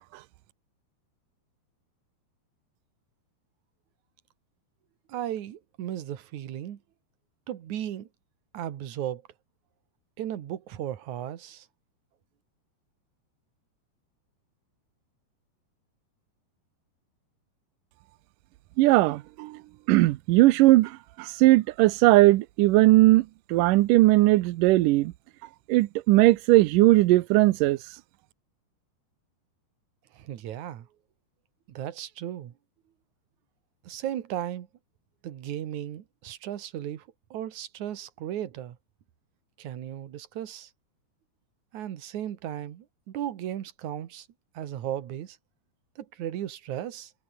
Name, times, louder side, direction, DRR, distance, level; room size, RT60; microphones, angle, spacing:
voice 1, 5.1-6.8 7.5-8.1 8.5-9.2 10.2-11.7 30.1-30.9 31.7-32.5 33.8-34.7 35.2-38.8 39.6-40.7 41.7-44.3 44.5-45.4 46.0-47.1, right 11 dB, 55° right, 2.5 m, -35 dB
voice 2, 18.8-19.6 19.9-25.1 25.7-27.8, right 18 dB, 85° right, 1.9 m, -19 dB
omnidirectional pair, 4.7 m